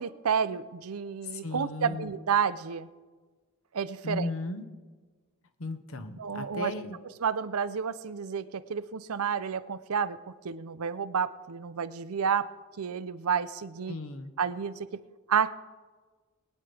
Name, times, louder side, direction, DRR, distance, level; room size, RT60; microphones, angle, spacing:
voice 1, 0.0-2.9 3.7-4.3 6.2-6.7 7.2-10.2 10.4-12.5 12.8-13.9 14.4-15.0 15.3-15.5, right 6 dB, 75° right, 14 dB, 0.5 m, -30 dB
voice 2, 1.3-2.1 4.0-4.7 5.6-7.0 13.9-14.3, left 2 dB, 65° left, 8 dB, 1.0 m, -36 dB
22.0 x 9.5 x 3.4 m, 1.4 s
head